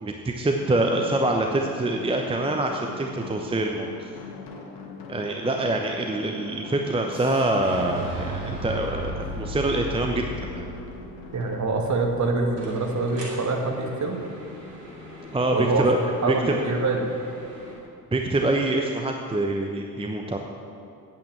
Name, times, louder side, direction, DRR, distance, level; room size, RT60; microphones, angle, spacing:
voice 1, 0.0-4.1 5.1-10.7 15.3-16.0 16.3-16.5 18.1-20.4, right 2 dB, 10° right, 2 dB, 0.9 m, -25 dB
sound 1, 0.6-17.9, left 4 dB, 55° left, 1.5 m, -44 dB
Boom, 7.1-13.0, right 1 dB, 70° right, 3.0 m, -35 dB
voice 2, 11.3-14.2 15.5-15.9 16.2-17.0, right 3 dB, 35° right, 2 dB, 1.9 m, -25 dB
sound 2, 12.6-17.8, equal, 85° right, 2.0 m, -43 dB
8.7 x 8.7 x 7.4 m, 2.5 s
figure-of-eight pair, 50°, 48 cm